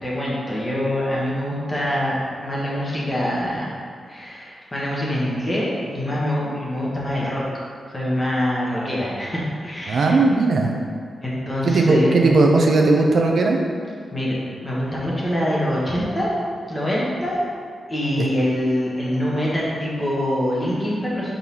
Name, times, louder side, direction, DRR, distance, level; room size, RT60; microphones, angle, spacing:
voice 1, 0.0-3.7 4.1-7.4 7.9-10.1 11.2-12.3 14.1-16.3 16.7-17.4 17.9-21.3, equal, 20° left, -6 dB, 1.4 m, -24 dB
voice 2, 9.9-10.7 11.6-13.6 18.2-18.3, right 3 dB, 60° right, 1 dB, 0.5 m, -17 dB
4.6 x 4.0 x 5.5 m, 2.1 s
wide cardioid pair, 145°, 0 cm